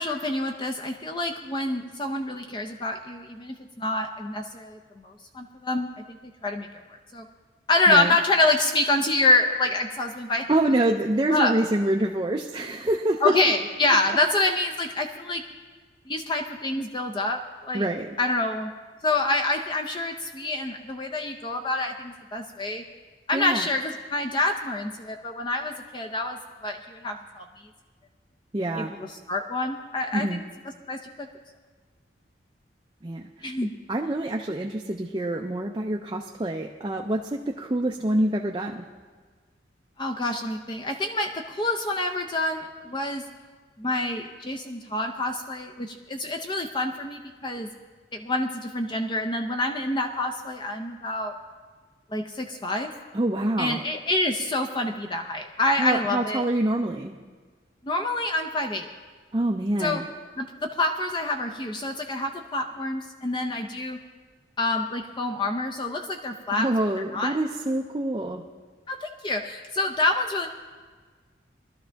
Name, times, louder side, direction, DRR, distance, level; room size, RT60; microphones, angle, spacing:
voice 1, 0.0-6.2 6.4-6.7 7.1-7.2 7.7-10.5 11.3-11.5 13.2-15.4 16.1-17.8 18.2-18.7 19.0-22.8 23.3-27.5 28.8-30.4 30.9-31.3 33.4-33.7 40.0-43.2 43.8-47.7 48.1-51.3 52.1-52.9 53.6-56.4 57.8-58.9 59.8-60.0 60.4-64.0 64.6-66.7 67.0-67.4 68.9-70.5, left 2 dB, 25° left, 3 dB, 0.6 m, -27 dB
voice 2, 10.5-13.3 17.7-18.1 23.3-23.6 28.5-28.9 30.1-30.4 33.0-33.3 33.9-38.8 53.1-53.8 55.8-57.2 59.3-60.0 66.5-68.4, right 1 dB, 25° right, 1 dB, 0.5 m, -26 dB
19.5 x 12.5 x 3.4 m, 1.5 s
head